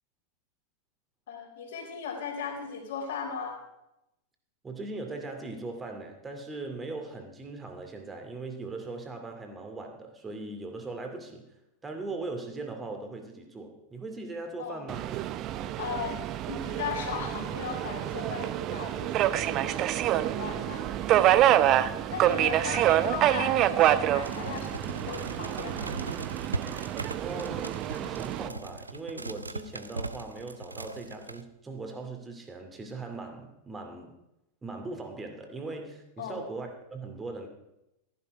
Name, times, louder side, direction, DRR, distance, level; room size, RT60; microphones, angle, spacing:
voice 1, 1.3-3.6 14.6-14.9 15.8-16.2 16.5-26.0 36.2-36.4, left 6 dB, 55° left, 1 dB, 4.0 m, -38 dB
voice 2, 4.6-11.5 11.8-15.1 27.2-34.1 34.6-37.5, right 3 dB, 15° right, 5 dB, 2.4 m, -39 dB
Subway metro underground, 14.9-28.5, right 12 dB, 35° right, 0.6 m, -27 dB
sound 1, 24.2-31.4, right 2 dB, 80° right, 0.6 m, -39 dB
14.5 x 10.5 x 4.8 m, 0.88 s
figure-of-eight pair, 90°, 0 cm